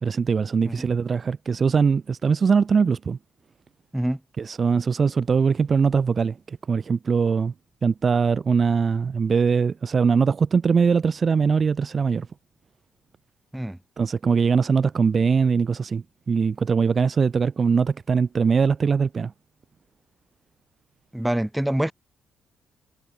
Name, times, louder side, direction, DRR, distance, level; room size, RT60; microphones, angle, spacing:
voice 1, 0.0-3.2 4.4-7.5 7.8-12.3 14.0-19.3, right 5 dB, 40° right, 0.4 m, -21 dB
voice 2, 21.1-21.9, right 1 dB, 5° right, 2.4 m, -25 dB
cardioid pair, 90°, 0 cm